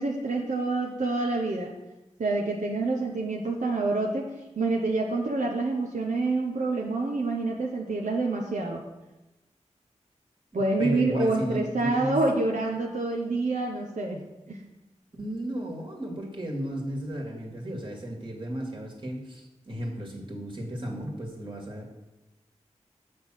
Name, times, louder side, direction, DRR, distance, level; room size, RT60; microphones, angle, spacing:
voice 1, 0.0-1.7 2.2-4.3 4.6-8.8 10.5-14.6, right 3 dB, 80° right, -1 dB, 1.0 m, -27 dB
voice 2, 10.5-12.2 15.2-21.9, equal, 40° right, 0 dB, 2.2 m, -34 dB
7.5 x 6.1 x 6.4 m, 1.0 s
wide cardioid pair, 60°, 13 cm